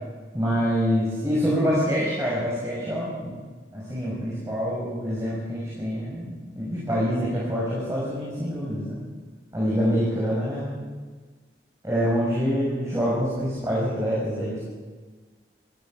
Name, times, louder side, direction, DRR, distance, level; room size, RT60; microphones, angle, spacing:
voice 1, 0.3-3.3 3.7-9.0 9.5-10.8 11.8-14.6, equal, 15° right, -6 dB, 6.0 m, -26 dB
23.0 x 15.5 x 7.5 m, 1.4 s
head